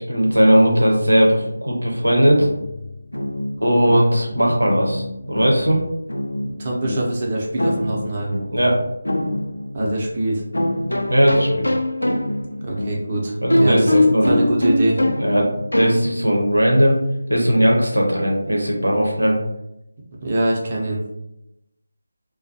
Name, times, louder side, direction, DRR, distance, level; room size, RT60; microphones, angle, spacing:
voice 1, 0.0-2.5 3.6-5.8 8.5-8.8 11.1-11.7 13.4-14.4 15.2-15.5 15.7-17.0 17.3-19.4, equal, 85° right, -1 dB, 0.8 m, -18 dB
sound 1, 2.3-16.4, left 1 dB, 85° left, 0.4 m, -24 dB
voice 2, 6.4-8.3 9.7-10.4 12.6-14.0 14.3-15.0 20.2-21.0, right 1 dB, 35° right, -2 dB, 0.6 m, -23 dB
2.4 x 2.2 x 2.7 m, 0.86 s
figure-of-eight pair, 160°, 0 cm